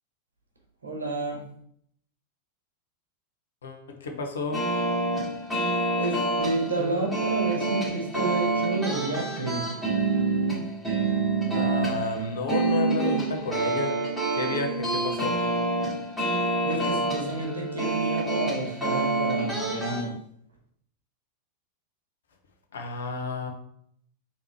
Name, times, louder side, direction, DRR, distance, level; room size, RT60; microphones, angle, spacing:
voice 1, 0.8-1.4 6.0-9.6 16.6-20.1, right 2 dB, 75° right, 1 dB, 1.0 m, -30 dB
voice 2, 3.6-4.6 11.5-13.9 14.4-15.4 22.7-23.5, left 3 dB, 65° left, 3 dB, 0.7 m, -31 dB
sound 1, 4.5-20.0, right 2 dB, 5° left, 1.7 m, -27 dB
3.6 x 2.9 x 4.5 m, 0.68 s
figure-of-eight pair, 90°, 0 cm